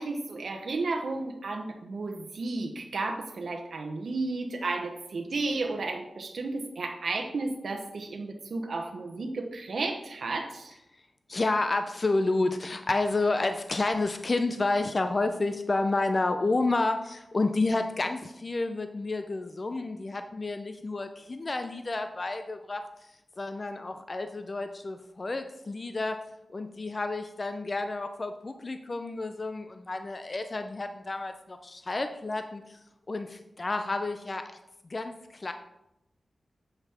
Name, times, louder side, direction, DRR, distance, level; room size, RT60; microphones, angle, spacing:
voice 1, 0.0-10.7, right 3 dB, 70° right, 3 dB, 0.9 m, -33 dB
voice 2, 11.3-23.1 23.4-26.2 26.5-32.8 33.1-34.5 34.9-35.5, left 2 dB, 40° left, 7 dB, 0.5 m, -30 dB
7.9 x 5.6 x 4.3 m, 0.88 s
wide cardioid pair, 100°, 0 cm